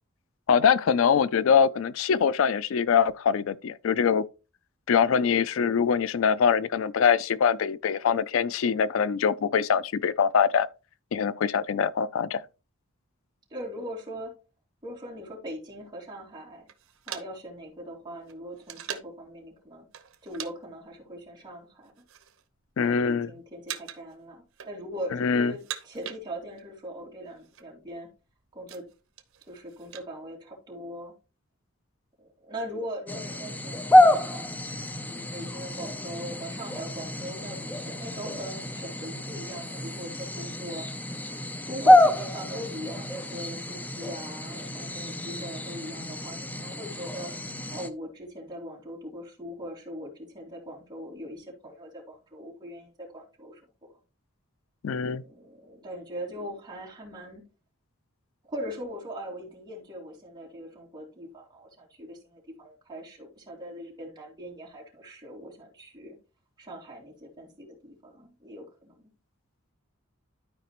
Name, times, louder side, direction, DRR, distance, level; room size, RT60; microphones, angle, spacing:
voice 1, 0.5-4.2 4.9-10.7 11.1-12.4 22.8-23.3 25.2-25.5 54.8-55.2, left 6 dB, 70° left, 0.4 m, -23 dB
voice 2, 13.5-14.3 14.8-16.7 17.1-19.9 20.2-21.9 22.8-28.1 28.5-28.8 29.5-31.1 32.2-34.5 35.0-40.9 41.7-47.3 47.7-53.6 55.1-57.5 58.5-66.2 66.6-69.1, equal, 20° right, 3.0 m, -40 dB
sound 1, 16.7-19.3 19.9-20.5 20.8-21.0 21.7-22.4 22.8-23.2 23.7-24.1 24.4-25.1 25.5-26.7 27.0-27.1 27.3-27.7 28.1-30.1, right 9 dB, 75° right, 1.0 m, -41 dB
sound 2, 33.1-47.9, left 1 dB, 10° left, 0.5 m, -26 dB
12.0 x 4.9 x 2.9 m
head